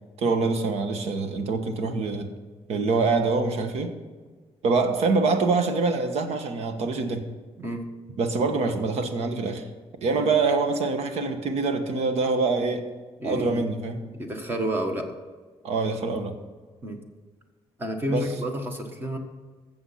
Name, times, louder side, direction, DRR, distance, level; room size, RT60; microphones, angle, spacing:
voice 1, 0.2-2.3 2.7-3.9 4.6-7.2 8.2-9.7 10.0-12.8 13.2-14.0 15.6-16.4 18.1-18.3, right 3 dB, 75° right, 7 dB, 1.3 m, -25 dB
voice 2, 13.2-13.6 14.1-15.1 16.8-17.0 17.8-19.2, right 1 dB, 20° right, 4 dB, 1.4 m, -30 dB
14.5 x 7.2 x 5.7 m, 1.4 s
cardioid pair, 170°, 11 cm